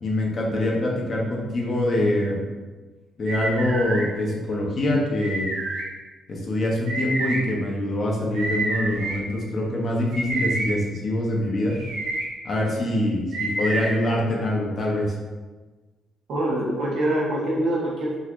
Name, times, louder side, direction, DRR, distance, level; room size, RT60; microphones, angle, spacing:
voice 1, 0.0-2.4 3.2-5.5 6.3-11.7 12.4-15.1, left 1 dB, 40° left, -2 dB, 0.7 m, -24 dB
sound 1, 3.3-4.0 5.2-5.8 6.9-7.4 8.3-9.2 10.1-10.7 11.7-12.2 13.3-13.9, right 2 dB, 90° right, 1.0 m, -28 dB
voice 2, 16.3-18.2, right 1 dB, 65° right, -5 dB, 1.1 m, -24 dB
4.0 x 2.9 x 2.5 m, 1.3 s
cardioid pair, 120°, 0 cm